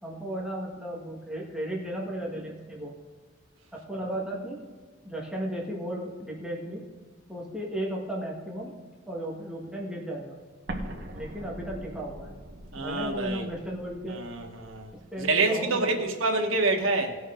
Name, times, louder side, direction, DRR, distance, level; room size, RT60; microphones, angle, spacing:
voice 1, 0.0-3.0 3.7-4.6 5.0-6.8 7.3-8.7 9.1-10.4 11.1-12.3 12.8-14.2 14.9-16.0, right 1 dB, 5° right, 1.7 m, -35 dB
Explosion, 10.7-15.4, right 1 dB, 50° right, 1.4 m, -42 dB
voice 2, 12.7-13.4 14.1-14.9 15.2-17.2, right 3 dB, 90° right, 1.6 m, -27 dB
18.0 x 6.4 x 3.8 m
head